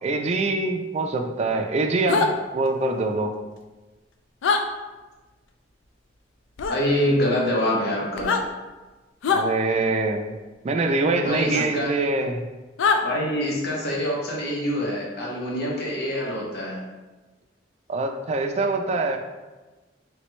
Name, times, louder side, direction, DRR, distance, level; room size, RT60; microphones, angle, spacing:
voice 1, 0.0-3.3 9.3-10.3 10.6-12.4 17.9-19.2, right 3 dB, 35° right, 4 dB, 0.3 m, -24 dB
sound 1, 2.1-2.3 4.4-4.6 6.6-6.8 8.1-8.4 9.2-9.4 11.5-11.7 12.8-13.0, left 5 dB, 85° left, 0.3 m, -22 dB
voice 2, 6.7-8.3 11.2-11.9 13.0-16.8, equal, 60° left, -4 dB, 0.9 m, -25 dB
3.3 x 3.1 x 3.0 m, 1.2 s
head